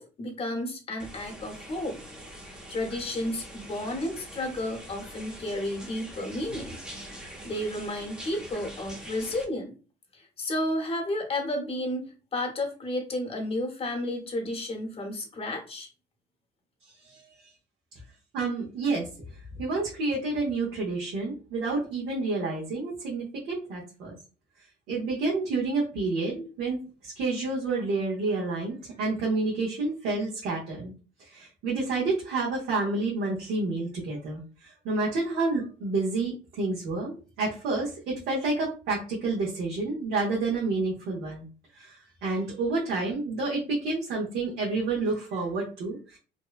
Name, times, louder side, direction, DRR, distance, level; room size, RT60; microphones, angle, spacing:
voice 1, 0.0-2.0 2.7-6.8 7.1-9.7 10.1-12.1 12.3-15.9, left 1 dB, 35° left, 2 dB, 0.9 m, -32 dB
sound 1, 1.0-9.4, right 1 dB, 5° right, 0.6 m, -44 dB
voice 2, 16.8-17.2 18.3-19.1 19.6-24.1 24.9-30.9 31.2-41.5 41.7-46.2, right 3 dB, 75° right, -5 dB, 0.9 m, -29 dB
2.7 x 2.1 x 2.3 m, 0.35 s
cardioid pair, 110°, 17 cm